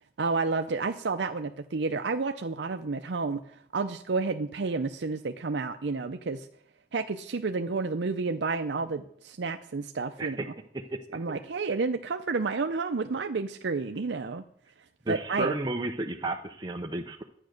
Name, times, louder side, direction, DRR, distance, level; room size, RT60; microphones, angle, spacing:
voice 1, 0.2-3.4 3.7-6.5 6.9-10.4 11.1-14.4 15.1-15.5, right 4 dB, 80° right, 7 dB, 0.6 m, -30 dB
voice 2, 15.1-17.2, right 2 dB, 25° right, 2 dB, 0.7 m, -32 dB
11.0 x 9.2 x 6.5 m, 0.65 s
head